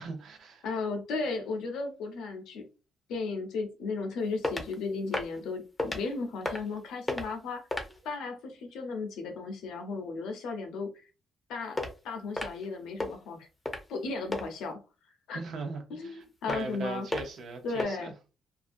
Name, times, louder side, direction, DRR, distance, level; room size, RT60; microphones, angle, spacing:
voice 1, 0.0-0.7 15.3-18.1, right 3 dB, 70° right, 0.8 m, -39 dB
voice 2, 0.6-2.7 3.1-7.6 8.0-10.9 11.5-13.5 13.9-14.8 15.3-15.4 15.9-17.1 17.6-18.1, left 4 dB, 85° left, 0.7 m, -35 dB
sound 1, 4.4-4.7 5.1-5.4 5.8-6.0 6.4-6.8 7.1-7.3 7.7-8.0 11.8-11.9 12.4-12.7 13.0-13.1 13.7-13.9 14.3-14.4 16.5-16.8 17.1-17.4 17.8-17.9, left 2 dB, 15° left, 0.6 m, -32 dB
2.5 x 2.3 x 2.5 m
cardioid pair, 90°, 0 cm